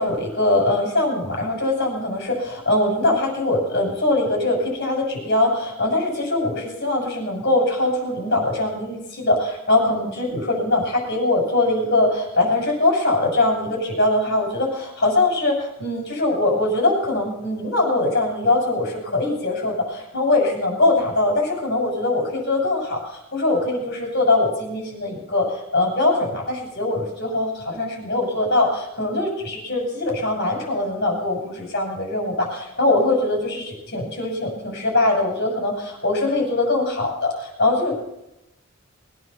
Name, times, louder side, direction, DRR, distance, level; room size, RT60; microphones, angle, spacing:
voice 1, 0.0-38.0, left 2 dB, 50° left, 0 dB, 6.9 m, -22 dB
21.0 x 9.6 x 7.1 m, 0.86 s
head